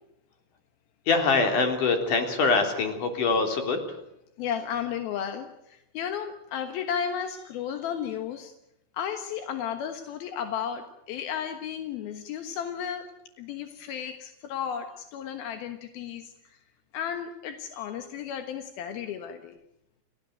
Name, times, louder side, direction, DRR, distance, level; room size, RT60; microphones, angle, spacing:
voice 1, 1.1-3.8, left 4 dB, 45° left, 6 dB, 4.3 m, -24 dB
voice 2, 4.4-8.5 8.9-13.1 13.4-16.3 16.9-19.6, left 8 dB, 65° left, 7 dB, 2.5 m, -34 dB
29.5 x 17.0 x 9.2 m, 0.83 s
omnidirectional pair, 5.9 m